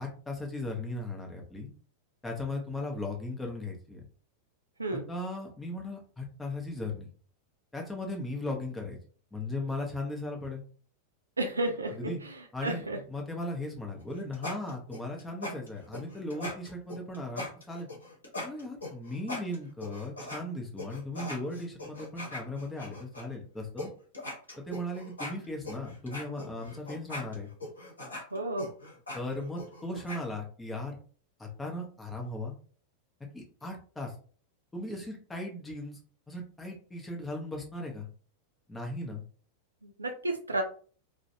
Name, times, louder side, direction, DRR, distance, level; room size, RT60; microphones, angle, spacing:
voice 1, 0.0-1.7 2.2-4.0 4.9-7.1 7.7-9.0 9.3-10.6 11.9-12.2 12.5-17.9 18.4-23.9 24.6-27.5 29.1-31.0 31.4-32.5 33.3-34.1 34.7-36.0 36.3-38.1 38.7-39.2, left 2 dB, 10° left, 0 dB, 0.7 m, -37 dB
voice 2, 11.4-12.1 12.6-13.0 28.3-28.7 39.8-40.6, right 2 dB, 80° right, 5 dB, 0.4 m, -32 dB
sound 1, 14.0-20.4 20.8-23.2 23.8-23.9 24.1-30.2, left 1 dB, 75° left, 0.8 m, -40 dB
2.5 x 2.1 x 2.7 m, 0.42 s
figure-of-eight pair, 90°, 0 cm